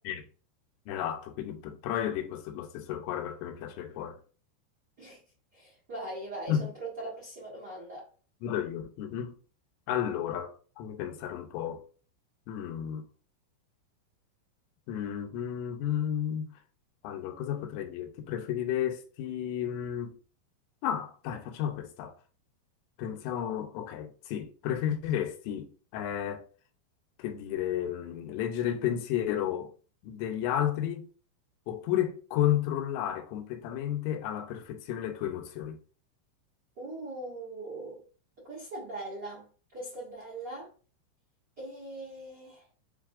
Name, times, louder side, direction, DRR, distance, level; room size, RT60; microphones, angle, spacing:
voice 1, 0.9-4.2 6.5-6.7 8.4-9.4 9.9-11.8 12.5-13.1 14.9-16.5 17.0-20.2 20.8-22.1 23.0-26.4 27.2-29.7 30.0-31.1 31.7-35.8, left 10 dB, 85° left, 3.2 m, -32 dB
voice 2, 5.5-8.1 36.8-38.0 38.4-40.7 41.6-42.7, right 2 dB, 70° right, 1.0 m, -41 dB
7.4 x 2.7 x 2.4 m
omnidirectional pair, 5.5 m